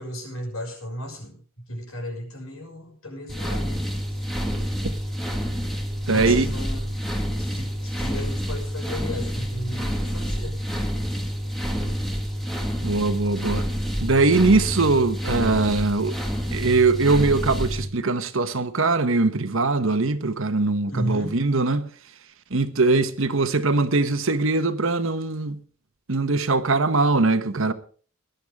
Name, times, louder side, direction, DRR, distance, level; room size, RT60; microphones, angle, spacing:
voice 1, 0.0-1.4 1.7-3.9 6.1-7.0 7.4-10.6 20.9-21.4, equal, 90° left, 6.1 m, -34 dB
sound 1, 3.3-17.8, equal, ahead, 1.9 m, -28 dB
voice 2, 6.1-6.5 12.8-13.7 14.0-16.2 16.5-21.9 22.5-25.6 26.1-27.7, right 3 dB, 70° right, 1.2 m, -21 dB
20.0 x 11.5 x 3.6 m
head